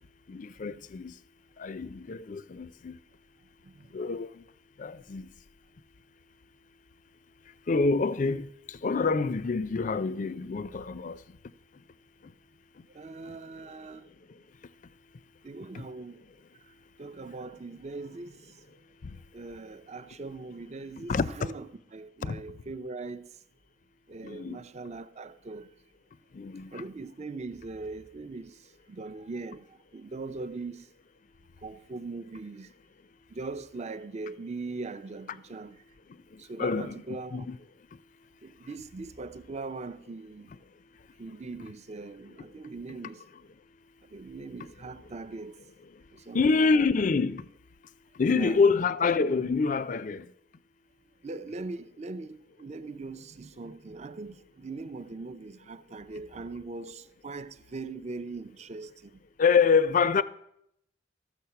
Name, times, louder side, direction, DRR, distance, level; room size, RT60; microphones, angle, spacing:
voice 1, 0.3-1.1 1.6-3.0 3.9-4.3 4.8-5.3 7.7-11.2 21.1-21.3 22.3-22.4 24.2-24.6 26.3-26.8 36.6-37.6 46.3-47.4 48.2-50.3 59.4-60.2, left 4 dB, 40° left, 0.4 m, -26 dB
voice 2, 12.9-14.1 15.4-16.2 16.5-23.4 24.1-25.7 26.7-30.9 31.6-32.7 33.3-35.8 36.4-37.5 38.4-40.5 41.2-43.2 44.0-45.6 46.1-46.9 48.3-48.6 51.2-59.2, right 3 dB, 35° right, 0.5 m, -41 dB
13.5 x 7.1 x 5.7 m
head